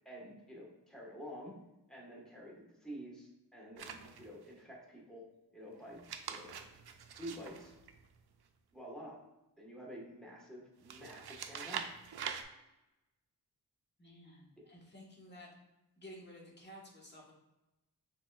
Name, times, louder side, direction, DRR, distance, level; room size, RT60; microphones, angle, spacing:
voice 1, 0.0-1.5 1.9-5.2 5.5-6.0 6.3-6.5 7.2-7.7 8.7-9.2 9.6-11.9, equal, ahead, -4 dB, 1.3 m, -49 dB
sound 1, 3.8-4.5 5.9-8.5 10.8-12.4, right 7 dB, 65° right, 0.5 m, -44 dB
voice 2, 14.0-15.5 16.0-17.4, equal, 25° left, -3 dB, 1.3 m, -53 dB
5.9 x 3.5 x 2.3 m, 0.99 s
wide cardioid pair, 90°, 41 cm